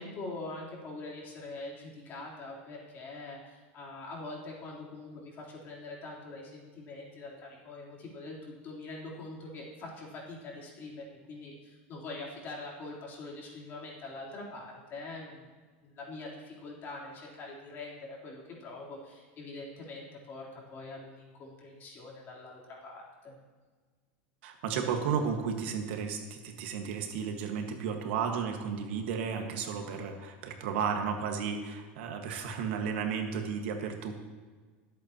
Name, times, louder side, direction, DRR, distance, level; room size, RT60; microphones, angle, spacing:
voice 1, 0.0-15.5 15.8-23.4, left 2 dB, 35° left, -4 dB, 3.6 m, -44 dB
voice 2, 24.4-34.1, right 6 dB, 70° right, 4 dB, 1.6 m, -33 dB
22.5 x 8.3 x 3.0 m, 1.4 s
supercardioid pair, 145°, 6 cm